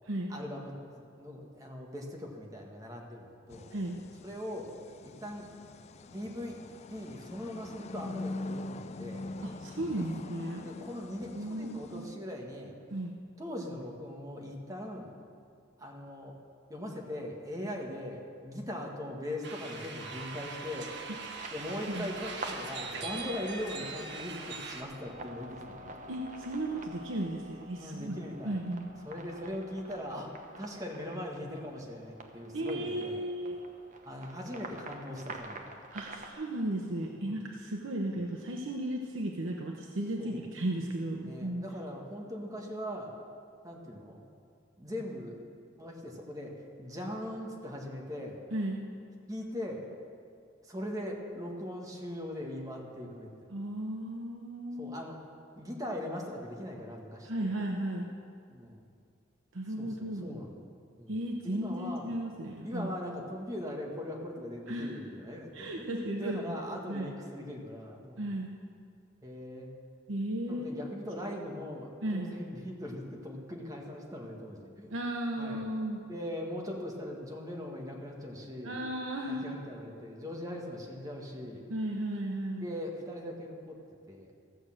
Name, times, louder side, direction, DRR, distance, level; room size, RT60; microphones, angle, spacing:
voice 1, 0.3-0.7 1.2-3.7 4.2-4.7 5.0-5.5 6.1-6.6 6.9-9.2 9.9-10.0 10.6-12.7 13.4-15.1 15.8-16.4 16.7-20.9 21.5-25.9 27.7-28.6 29.0-33.3 34.0-35.7 37.1-37.3 40.2-40.5 41.2-43.1 43.6-44.2 44.8-45.4 45.8-48.4 49.3-49.9 50.6-53.3 54.8-55.2 55.5-57.5 58.5-58.8 59.8-60.6 61.0-61.2 61.4-62.1 62.6-68.3 69.2-69.7 70.5-74.9 75.4-75.6 76.1-78.8 79.2-81.6 82.6-83.8 84.1-84.3, left 1 dB, 20° right, 0 dB, 1.5 m, -40 dB
sound 1, 3.5-12.1, left 2 dB, 35° left, 0.3 m, -43 dB
voice 2, 9.4-10.7 11.3-12.1 12.9-13.1 21.9-22.1 26.1-28.2 28.4-28.9 32.5-33.6 35.9-41.6 48.5-48.8 53.5-54.9 57.2-58.1 59.5-60.3 61.1-62.9 64.7-65.0 65.5-66.6 66.9-67.1 68.2-68.5 70.1-70.8 72.0-72.3 74.9-76.0 78.6-79.5 81.7-82.7, right 1 dB, 90° right, 1 dB, 0.9 m, -35 dB
sound 2, 19.4-24.8, right 4 dB, 65° right, 1.2 m, -42 dB
sound 3, 20.0-36.3, right 2 dB, 40° right, 0.9 m, -47 dB
14.5 x 6.5 x 7.6 m, 2.3 s
head